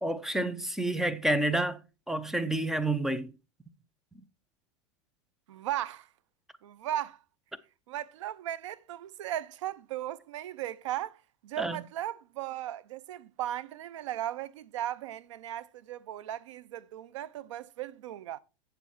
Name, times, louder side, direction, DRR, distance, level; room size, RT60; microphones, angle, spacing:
voice 1, 0.0-1.8 2.1-3.3 11.6-11.8, right 1 dB, 5° right, 0.7 m, -29 dB
voice 2, 5.5-6.1 6.6-7.2 7.9-11.2 11.4-18.4, right 12 dB, 85° right, 0.6 m, -37 dB
8.0 x 7.3 x 4.4 m
supercardioid pair, 130°, 16 cm